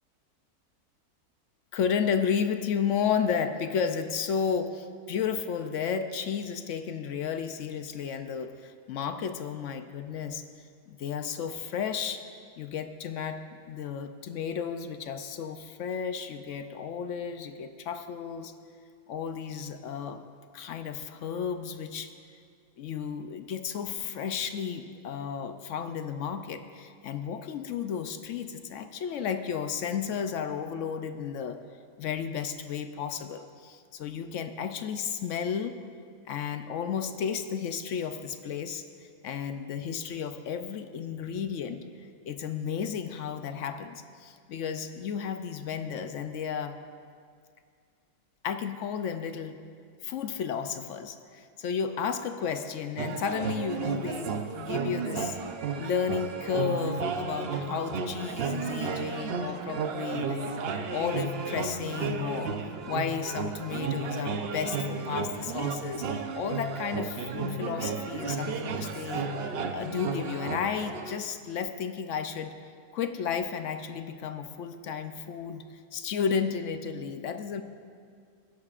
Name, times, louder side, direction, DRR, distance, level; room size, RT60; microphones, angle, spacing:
voice 1, 1.7-10.5 10.9-12.2 12.6-18.5 19.1-20.2 20.5-22.1 22.8-31.6 32.0-35.8 36.3-41.8 42.3-46.8 48.4-49.6 50.0-55.4 55.8-60.6 60.9-62.5 62.9-69.3 69.7-72.5 72.9-75.7 75.9-77.6, left 7 dB, 65° left, 8 dB, 0.8 m, -33 dB
sound 1, 53.0-71.2, right 4 dB, 55° right, 0.7 m, -33 dB
19.0 x 10.5 x 2.4 m, 2.2 s
omnidirectional pair, 1.6 m